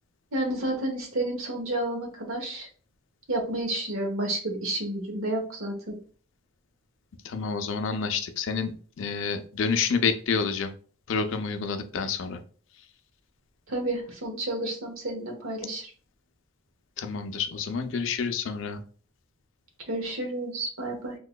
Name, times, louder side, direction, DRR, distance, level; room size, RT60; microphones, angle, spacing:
voice 1, 0.3-2.7 3.3-5.9 13.7-15.9 19.9-21.2, right 1 dB, 80° right, 2 dB, 1.0 m, -30 dB
voice 2, 7.2-10.7 11.1-12.4 17.0-18.8, left 5 dB, 65° left, 7 dB, 0.4 m, -28 dB
3.6 x 3.0 x 2.2 m, 0.42 s
head